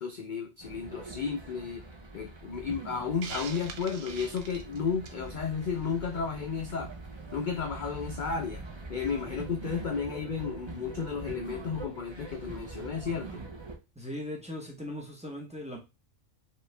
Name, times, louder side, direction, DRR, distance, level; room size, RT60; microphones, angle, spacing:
voice 1, 0.0-1.8 2.1-6.9 7.3-8.6 8.9-13.4, left 6 dB, 60° left, 4 dB, 0.5 m, -33 dB
sound 1, 0.6-13.8, right 3 dB, 30° right, 0.6 m, -43 dB
Hiss, 3.2-5.3, right 6 dB, 75° right, 1.0 m, -42 dB
voice 2, 14.0-15.8, left 1 dB, 5° right, -1 dB, 0.9 m, -39 dB
5.2 x 2.5 x 3.2 m, 0.26 s
omnidirectional pair, 1.4 m